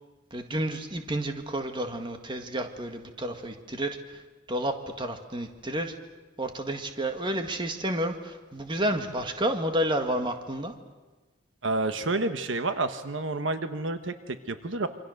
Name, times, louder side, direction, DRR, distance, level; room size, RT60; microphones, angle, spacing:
voice 1, 0.3-4.0 4.5-6.0 6.4-10.7, right 1 dB, 25° right, 5 dB, 1.8 m, -30 dB
voice 2, 11.6-14.9, right 2 dB, 75° right, 9 dB, 1.2 m, -29 dB
27.5 x 25.5 x 6.5 m, 1.3 s
head